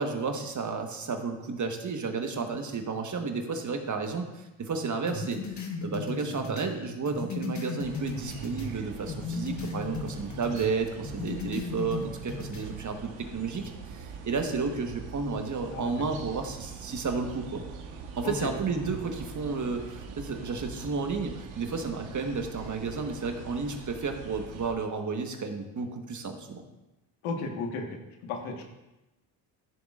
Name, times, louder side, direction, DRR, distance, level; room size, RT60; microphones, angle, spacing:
voice 1, 0.0-17.6 18.2-26.6, right 4 dB, 35° right, 5 dB, 1.4 m, -32 dB
sound 1, 5.1-8.8 9.1-10.7 11.0-12.7, left 4 dB, 35° left, 1.6 m, -36 dB
sound 2, 7.8-24.7, right 5 dB, 70° right, 1.4 m, -43 dB
voice 2, 27.2-27.9 28.2-28.7, left 4 dB, 70° left, 3 dB, 1.6 m, -33 dB
13.5 x 7.1 x 2.5 m, 1.0 s
supercardioid pair, 65°, 49 cm